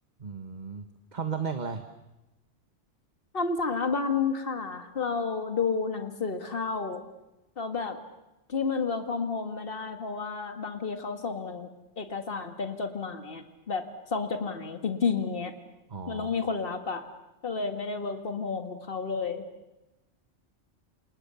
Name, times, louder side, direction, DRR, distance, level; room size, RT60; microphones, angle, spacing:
voice 1, 0.2-1.8 15.9-16.5, right 6 dB, 40° right, 7 dB, 1.5 m, -35 dB
voice 2, 3.3-7.0 7.6-8.0 8.5-11.7 12.0-13.9 14.1-15.5 16.1-17.0 17.4-19.4, left 5 dB, 50° left, 7 dB, 2.2 m, -31 dB
28.0 x 28.0 x 7.1 m, 0.97 s
omnidirectional pair, 1.2 m